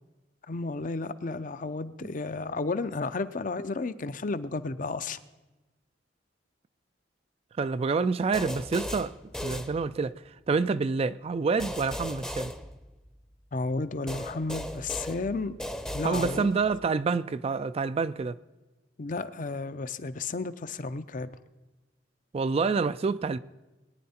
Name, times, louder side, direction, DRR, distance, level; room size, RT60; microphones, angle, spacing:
voice 1, 0.5-5.2 13.5-15.5 15.9-16.5 19.0-21.3, left 3 dB, 45° left, 0.6 m, -32 dB
voice 2, 7.6-9.1 9.4-12.5 16.0-18.4 22.3-23.4, right 4 dB, 30° right, 0.3 m, -27 dB
sound 1, 8.3-10.3 11.6-13.3 14.1-16.8, left 1 dB, 5° left, 0.7 m, -37 dB
22.0 x 9.5 x 4.3 m
head